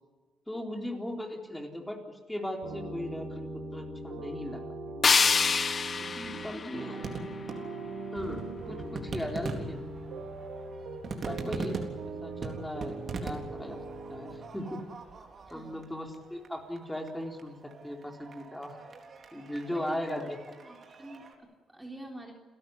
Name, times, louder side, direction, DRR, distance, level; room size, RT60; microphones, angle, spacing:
voice 1, 0.5-4.6 6.0-7.1 8.1-9.8 11.2-11.8 12.2-13.0 13.2-13.8 14.1-14.8 15.5-18.8 19.3-20.4, left 1 dB, 5° left, 2 dB, 3.9 m, -38 dB
sound 1, 2.6-14.4, right 3 dB, 85° right, 4.4 m, -41 dB
sound 2, 5.0-8.0, left 5 dB, 40° left, 0.9 m, -27 dB
sound 3, 6.2-21.3, right 3 dB, 50° right, 3.8 m, -42 dB
voice 2, 6.3-7.0 9.2-9.4 15.5-15.8 19.7-20.3 20.6-22.3, right 1 dB, 10° right, 1 dB, 3.5 m, -47 dB
29.0 x 13.0 x 9.7 m, 1.4 s
cardioid pair, 90°, 0 cm